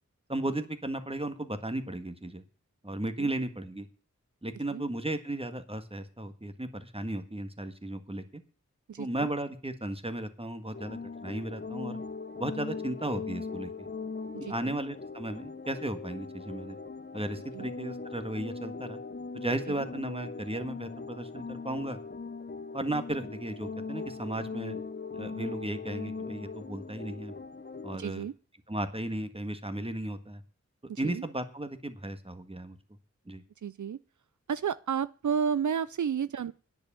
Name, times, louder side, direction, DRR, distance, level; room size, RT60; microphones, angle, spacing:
voice 1, 0.3-2.4 2.8-3.9 4.4-8.4 9.0-12.0 12.4-13.7 14.4-16.8 17.1-19.0 19.3-22.0 22.7-24.8 25.1-27.3 27.8-28.3 28.7-30.4 31.0-32.8 33.3-33.4, right 1 dB, 20° right, 1.7 m, -35 dB
voice 2, 8.9-9.3 14.3-14.8 17.5-17.7 19.7-19.9 27.9-28.3 30.9-31.2 33.6-34.0 34.5-36.5, right 7 dB, 75° right, 0.5 m, -32 dB
sound 1, 10.7-28.0, left 4 dB, 35° left, 0.9 m, -40 dB
10.0 x 7.2 x 8.8 m
wide cardioid pair, 60°, 29 cm